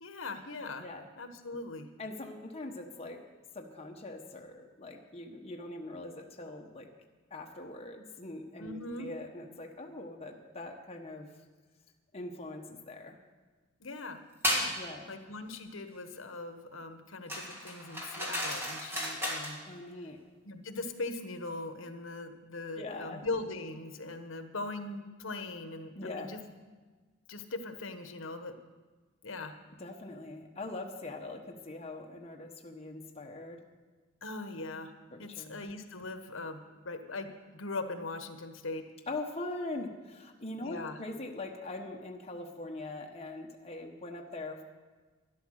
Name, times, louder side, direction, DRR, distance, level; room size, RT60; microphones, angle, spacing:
voice 1, 0.0-0.8 1.2-1.9 8.6-9.1 13.8-14.2 14.4-14.7 15.1-19.6 20.4-26.4 27.3-28.5 29.2-29.5 34.2-34.9 35.2-36.6 36.8-38.9 40.6-41.0, left 3 dB, 70° left, 8 dB, 1.3 m, -40 dB
voice 2, 2.0-3.2 3.5-6.9 7.3-11.3 12.1-13.2 14.7-15.1 19.7-20.2 22.8-23.2 25.9-26.3 29.8-33.6 35.1-35.6 39.1-44.6, left 2 dB, 30° left, 1 dB, 1.2 m, -42 dB
sound 1, 14.4-14.7 17.3-19.6, equal, 10° right, 2.5 m, -33 dB
12.5 x 11.0 x 6.5 m, 1.4 s
head